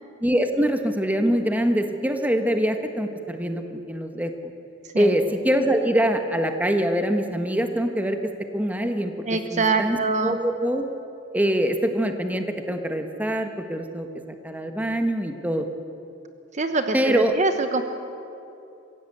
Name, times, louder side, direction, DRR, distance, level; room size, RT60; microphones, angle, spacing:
voice 1, 0.2-4.5 4.9-8.2 8.5-10.8 11.3-14.1 14.4-15.7 16.9-17.3, equal, 10° right, 6 dB, 1.4 m, -24 dB
voice 2, 9.3-10.4 16.5-17.8, right 3 dB, 40° right, 7 dB, 1.0 m, -24 dB
24.5 x 16.5 x 8.2 m, 2.8 s
head